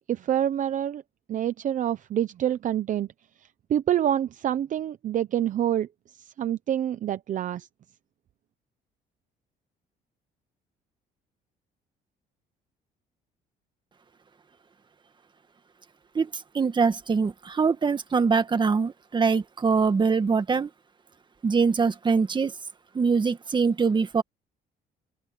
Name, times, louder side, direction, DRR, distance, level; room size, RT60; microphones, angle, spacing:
voice 1, 0.1-1.0 1.3-3.1 3.7-5.9 6.4-7.7, right 10 dB, 50° right, 0.8 m, -26 dB
voice 2, 16.5-20.7 21.4-22.5 22.9-24.2, right 5 dB, 25° right, 1.8 m, -23 dB
open air
cardioid pair, 110°, 17 cm